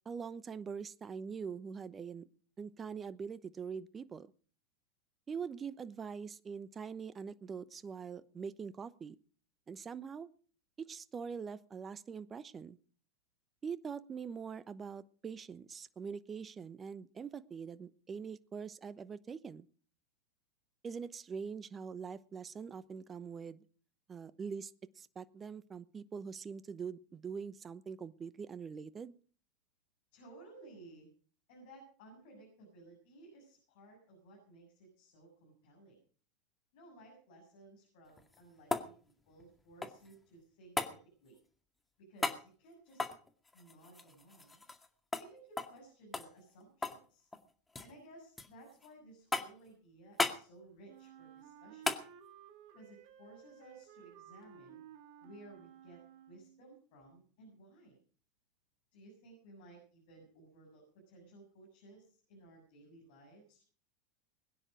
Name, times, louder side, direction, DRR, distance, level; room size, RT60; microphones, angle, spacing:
voice 1, 0.0-2.2 2.6-4.3 5.3-9.2 9.7-10.3 10.8-12.8 13.6-19.7 20.8-23.6 24.1-29.2, right 6 dB, 25° right, 17 dB, 0.9 m, -43 dB
voice 2, 30.1-31.1 31.5-36.0 36.7-41.4 42.0-43.1 43.5-44.6 45.2-47.3 47.8-51.9 52.7-54.8 55.2-56.0 56.3-58.0 58.9-63.6, right 2 dB, 65° left, 0 dB, 7.6 m, -57 dB
sound 1, 38.1-40.2 40.8-41.0 42.2-42.4 42.9-44.9 45.1-45.3 45.6-45.8 46.1-47.1 47.3-47.9 48.4-48.9 49.3-49.7 50.2-50.4 51.8-52.1 54.4-54.5, left 3 dB, 15° left, 2.1 m, -37 dB
Wind instrument woodwind instrument, 50.9-56.6, right 9 dB, 55° right, 1.8 m, -56 dB
21.5 x 10.0 x 5.1 m, 0.42 s
hypercardioid pair, 85°, 0 cm